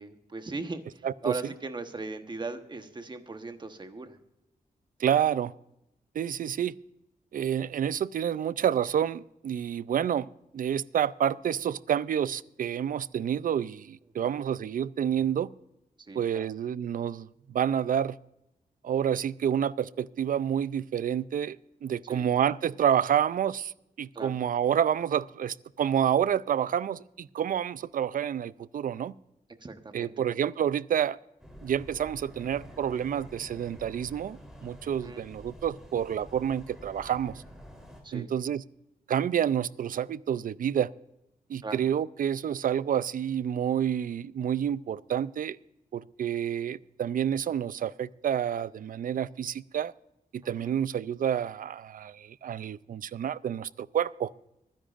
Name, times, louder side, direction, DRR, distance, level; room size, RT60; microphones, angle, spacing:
voice 1, 0.0-4.2 14.2-14.4 16.0-16.5 22.1-22.3 24.1-24.3 29.6-30.2 35.0-35.2 38.0-38.3 41.6-41.8 50.6-50.7, right 3 dB, 30° right, 7 dB, 1.1 m, -39 dB
voice 2, 1.0-1.4 5.0-5.5 6.1-6.7 7.3-10.3 10.5-15.5 16.1-18.2 18.8-23.7 24.0-29.1 29.9-31.2 31.6-37.4 38.1-38.6 39.1-40.9 41.5-45.6 45.9-49.9 50.3-54.3, right 9 dB, 65° right, 19 dB, 0.4 m, -29 dB
sound 1, 31.4-38.0, equal, 5° right, 3.5 m, -48 dB
24.5 x 10.5 x 2.5 m, 0.88 s
wide cardioid pair, 105°, 15 cm